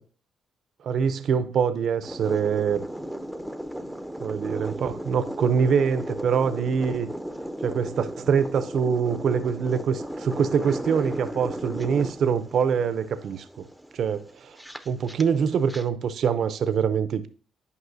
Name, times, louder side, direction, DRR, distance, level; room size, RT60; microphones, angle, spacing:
voice 1, 0.8-2.8 4.2-7.1 7.6-13.6 13.9-14.6 14.9-17.3, right 7 dB, 65° right, 0.6 m, -24 dB
sound 1, 2.0-15.8, equal, ahead, 0.7 m, -35 dB
9.6 x 5.4 x 2.7 m
cardioid pair, 90°, 0 cm